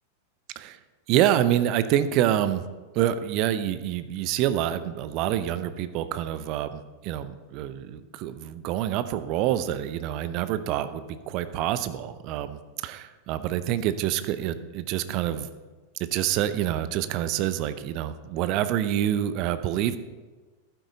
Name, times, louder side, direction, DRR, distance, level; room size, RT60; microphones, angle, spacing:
voice 1, 1.1-2.6 2.9-15.5 16.0-20.0, right 11 dB, 40° right, 12 dB, 0.6 m, -27 dB
11.5 x 9.3 x 3.9 m, 1.3 s
figure-of-eight pair, 90°, 0 cm